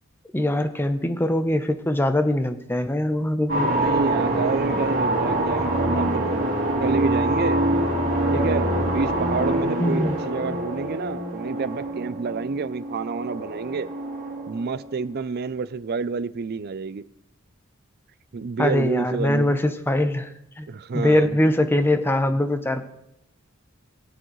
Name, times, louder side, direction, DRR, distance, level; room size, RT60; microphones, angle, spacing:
voice 1, 0.3-3.7 9.8-10.2 18.6-20.3 20.6-20.7 20.9-22.9, left 1 dB, 10° left, 9 dB, 0.7 m, -22 dB
sound 1, 3.5-14.9, right 1 dB, 65° right, 3.1 m, -25 dB
voice 2, 3.6-6.3 6.8-7.6 8.3-13.9 14.5-17.0 18.3-19.5 20.7-21.4, right 5 dB, 50° right, 15 dB, 0.4 m, -29 dB
22.0 x 7.7 x 3.1 m, 0.83 s
head